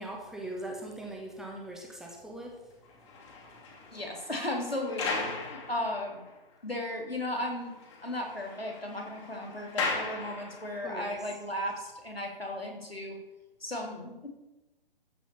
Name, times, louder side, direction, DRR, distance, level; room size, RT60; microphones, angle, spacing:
voice 1, 0.0-2.6 10.8-11.1, right 1 dB, ahead, 0 dB, 1.1 m, -40 dB
sound 1, 2.8-6.3 6.8-6.9 7.3-7.4 7.7-10.9, left 4 dB, 30° left, 2.5 m, -38 dB
voice 2, 3.9-6.2 6.6-7.7 8.0-13.2 13.6-14.3, left 1 dB, 90° left, 0 dB, 3.5 m, -35 dB
14.0 x 5.9 x 7.3 m, 1.0 s
figure-of-eight pair, 130°, 29 cm